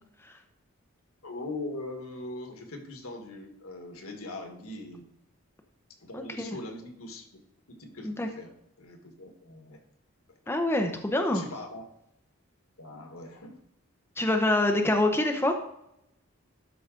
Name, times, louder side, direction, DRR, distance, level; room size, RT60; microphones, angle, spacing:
voice 1, 1.2-5.1 6.0-7.4 7.7-9.8 10.3-10.5 11.3-11.9 12.8-13.6, left 2 dB, 90° left, 5 dB, 1.5 m, -41 dB
voice 2, 6.1-6.4 8.0-8.3 10.5-11.4 14.2-15.6, left 1 dB, 10° left, 4 dB, 0.7 m, -25 dB
12.5 x 4.9 x 3.8 m, 0.78 s
head